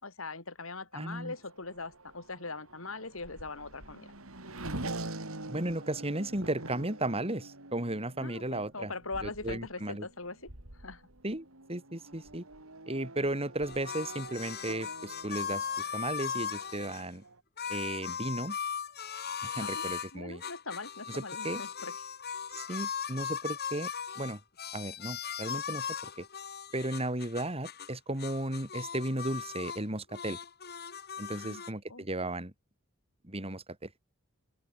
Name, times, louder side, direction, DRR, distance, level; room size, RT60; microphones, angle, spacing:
voice 1, 0.0-4.1 8.2-11.1 19.6-19.9 20.1-21.9 31.3-31.6 31.9-32.0, left 3 dB, 70° left, 5.0 m, -41 dB
voice 2, 0.9-1.3 5.5-8.9 9.2-10.0 11.2-12.5 12.9-17.2 17.7-18.6 19.4-20.4 21.1-21.6 22.7-23.9 24.2-24.4 24.7-25.9 26.2-26.3 26.7-30.4 31.2-32.5 33.2-33.9, right 1 dB, 30° right, 4.8 m, -35 dB
Race car auto racing / Accelerating revving vroom, 1.2-17.4, right 2 dB, 90° right, 5.1 m, -45 dB
sound 1, 13.6-17.0 17.6-20.1 20.4-27.9 28.2-29.8 30.1-31.7, left 7 dB, 50° left, 6.8 m, -38 dB
open air
head